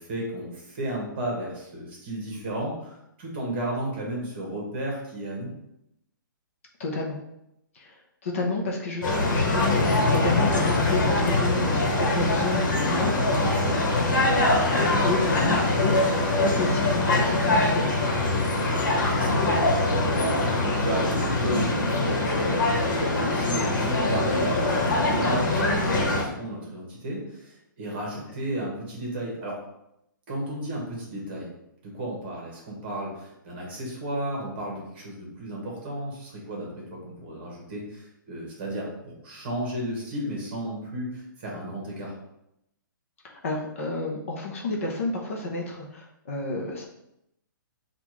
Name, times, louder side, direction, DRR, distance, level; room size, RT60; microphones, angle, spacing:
voice 1, 0.0-5.5 13.4-13.7 19.0-19.4 20.3-29.6 30.3-31.5 31.9-42.1, right 1 dB, 30° right, -2 dB, 1.2 m, -33 dB
voice 2, 6.8-7.2 7.7-8.0 8.2-13.2 15.0-16.0 16.3-17.9 43.2-46.9, left 3 dB, 40° left, 0 dB, 0.7 m, -30 dB
sound 1, 9.0-26.2, left 2 dB, 65° left, 1.2 m, -23 dB
5.4 x 2.4 x 3.1 m, 0.82 s
hypercardioid pair, 175°, 11 cm